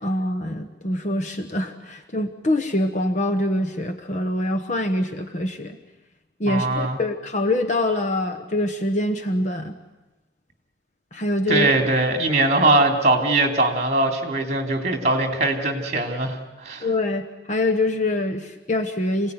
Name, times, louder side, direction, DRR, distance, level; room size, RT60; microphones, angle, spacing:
voice 1, 0.0-5.8 6.4-9.7 11.1-11.7 16.8-19.3, left 1 dB, 40° left, 5 dB, 1.0 m, -24 dB
voice 2, 6.4-7.0 11.5-16.9, right 2 dB, 35° right, 4 dB, 2.9 m, -21 dB
26.5 x 17.5 x 9.5 m, 1.1 s
head